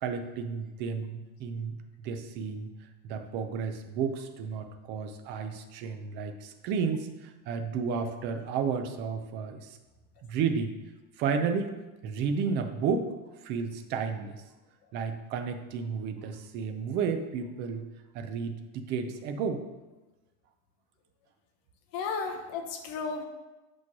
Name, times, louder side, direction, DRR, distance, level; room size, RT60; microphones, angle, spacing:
voice 1, 0.0-2.7 3.0-7.1 7.5-9.7 10.2-10.7 11.2-11.8 12.0-13.1 13.4-14.4 14.9-17.8 18.1-19.6, right 6 dB, 30° right, 7 dB, 0.4 m, -32 dB
voice 2, 21.9-23.3, left 5 dB, 45° left, 5 dB, 0.9 m, -33 dB
8.3 x 3.1 x 5.9 m, 1.1 s
supercardioid pair, 170°, 37 cm